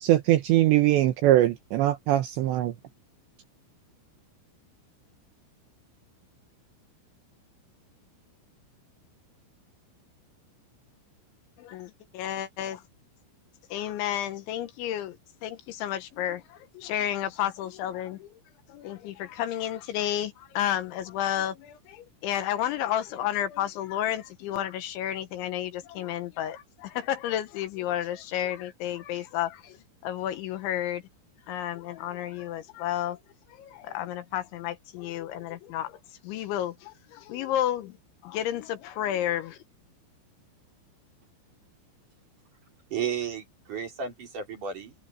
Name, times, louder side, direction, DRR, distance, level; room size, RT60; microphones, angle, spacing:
voice 1, 0.0-2.7, right 14 dB, 75° right, 2.9 m, -22 dB
voice 2, 11.6-12.8 13.7-15.2 15.4-18.3 18.7-29.8 30.0-31.0 31.5-33.2 33.6-36.0 36.2-37.9 38.2-39.6, left 11 dB, 75° left, 3.2 m, -31 dB
voice 3, 42.9-44.9, right 7 dB, 40° right, 5.1 m, -33 dB
omnidirectional pair, 5.8 m